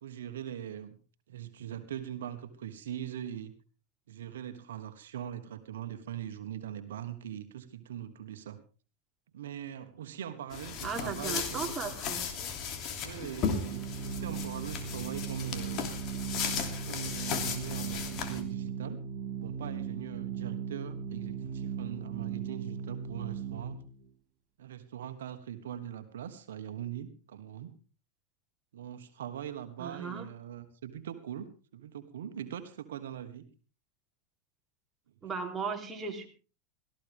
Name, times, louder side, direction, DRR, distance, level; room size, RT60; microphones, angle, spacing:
voice 1, 0.0-1.0 1.3-3.5 4.1-8.6 9.3-12.0 13.0-15.9 16.9-19.0 19.4-23.8 24.6-27.7 28.7-31.5 31.7-33.4, right 10 dB, 85° right, 9 dB, 1.4 m, -41 dB
sound 1, 10.5-18.4, left 6 dB, 50° left, 2.9 m, -36 dB
voice 2, 10.8-12.5 29.8-30.3 35.2-36.3, right 5 dB, 20° right, 1 dB, 3.3 m, -37 dB
Organ, 13.3-24.0, right 7 dB, 55° right, 3.1 m, -38 dB
17.5 x 14.5 x 3.6 m, 0.35 s
hypercardioid pair, 115°, 0 cm